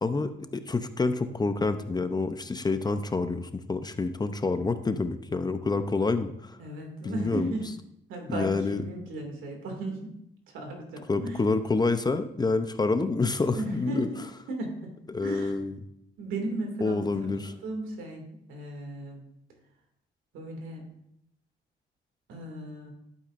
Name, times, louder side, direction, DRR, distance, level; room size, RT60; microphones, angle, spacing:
voice 1, 0.0-6.6 7.0-7.5 8.3-8.8 11.1-14.1 15.1-15.7 16.8-17.5, left 3 dB, 20° left, 10 dB, 0.6 m, -28 dB
voice 2, 6.6-7.7 8.1-10.2 10.5-11.4 13.5-15.5 16.2-17.1 17.3-19.2 20.3-20.9 22.3-22.9, right 2 dB, 85° right, 2 dB, 2.4 m, -36 dB
11.5 x 8.3 x 2.6 m, 0.77 s
cardioid pair, 90°, 20 cm